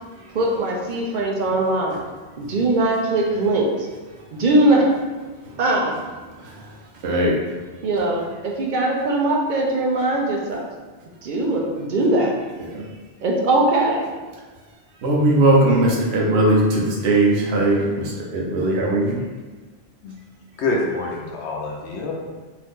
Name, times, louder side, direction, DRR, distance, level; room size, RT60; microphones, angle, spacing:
voice 1, 0.3-2.0 2.4-3.9 4.3-4.9 5.6-5.9 7.8-10.7 11.2-12.3 13.2-14.1, right 2 dB, 55° right, -1 dB, 0.6 m, -20 dB
voice 2, 6.3-6.7 7.0-7.4 12.6-12.9 15.0-19.2, right 1 dB, 75° right, -2 dB, 0.9 m, -19 dB
voice 3, 20.6-22.1, left 2 dB, 80° left, -2 dB, 0.8 m, -26 dB
2.7 x 2.5 x 3.5 m, 1.3 s
omnidirectional pair, 1.1 m